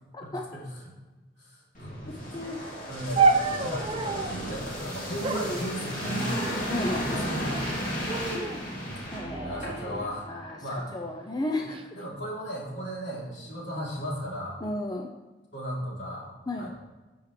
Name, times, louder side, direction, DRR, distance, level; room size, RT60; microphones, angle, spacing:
voice 1, 0.2-0.9 1.4-6.4 6.7-7.9 9.2-10.3 10.6-10.9 11.9-14.6 15.5-16.3 16.6-16.7, equal, 70° left, -5 dB, 3.4 m, -36 dB
sound 1, 1.7-10.1 10.4-10.6, equal, 45° left, 3.0 m, -34 dB
sound 2, 3.2-4.4 5.2-6.4 7.2-7.7 8.1-8.6 9.3-10.6 11.4-11.8, right 4 dB, 30° right, 0.6 m, -29 dB
voice 2, 5.2-5.6 6.7-7.3 8.3-10.6 10.9-11.8 14.6-15.1 16.5-16.7, left 1 dB, 20° left, 2 dB, 0.5 m, -34 dB
13.5 x 7.1 x 3.3 m, 1.2 s
head